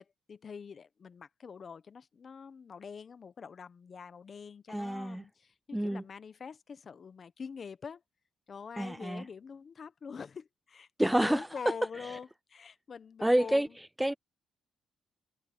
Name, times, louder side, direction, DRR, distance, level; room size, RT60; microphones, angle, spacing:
voice 1, 0.0-8.0 8.5-13.6, left 6 dB, 45° left, 1.2 m, -45 dB
voice 2, 4.7-5.2 5.7-6.0 8.8-9.2 11.0-11.5 12.0-12.2 13.2-14.1, right 1 dB, 5° right, 0.3 m, -29 dB
cardioid pair, 90°, 0 cm